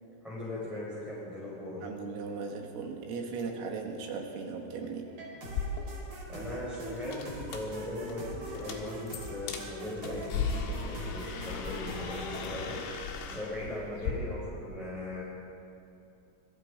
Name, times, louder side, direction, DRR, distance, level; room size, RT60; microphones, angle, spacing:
voice 1, 0.2-1.8 6.3-12.8 13.3-15.2, left 1 dB, ahead, -9 dB, 5.1 m, -39 dB
voice 2, 1.8-5.1 13.6-13.7, right 5 dB, 85° right, 1 dB, 5.0 m, -37 dB
sound 1, 5.1-12.4, right 2 dB, 40° right, 5.7 m, -42 dB
sound 2, 5.5-14.1, left 5 dB, 75° left, 4.4 m, -38 dB
27.5 x 24.0 x 5.1 m, 2.7 s
omnidirectional pair, 5.9 m